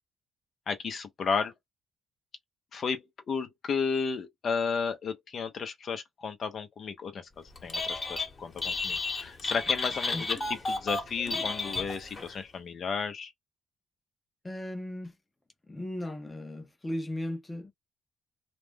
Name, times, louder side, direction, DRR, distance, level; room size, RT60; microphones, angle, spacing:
voice 1, 0.7-1.5 2.7-7.3 7.6-10.4 10.7-13.3, left 5 dB, 55° left, 0.7 m, -33 dB
Telephone, 7.6-8.3 8.6-12.3, left 3 dB, 35° left, 1.2 m, -32 dB
voice 2, 14.4-15.2 15.7-17.7, left 1 dB, 15° left, 0.7 m, -36 dB
2.4 x 2.1 x 3.4 m
cardioid pair, 90°, 0 cm